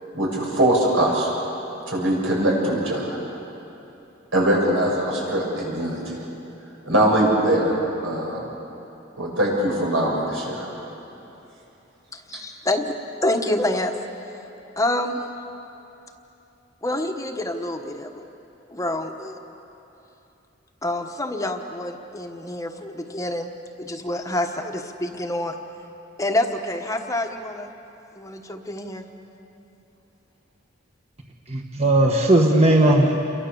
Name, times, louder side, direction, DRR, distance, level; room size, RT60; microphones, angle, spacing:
voice 1, 0.1-1.3 1.9-3.2 4.3-6.2 6.9-7.8 8.0-8.5 9.2-10.7, right 1 dB, 85° right, -2 dB, 7.6 m, -22 dB
voice 2, 12.3-12.9 13.2-13.9 14.8-15.2 16.8-18.2 18.7-19.4 20.8-23.5 23.8-25.5 26.2-27.7 28.2-29.1, left 1 dB, 15° left, 4 dB, 1.2 m, -27 dB
voice 3, 31.5-33.2, right 1 dB, 35° right, 1 dB, 1.6 m, -17 dB
29.0 x 24.0 x 7.1 m, 2.9 s
head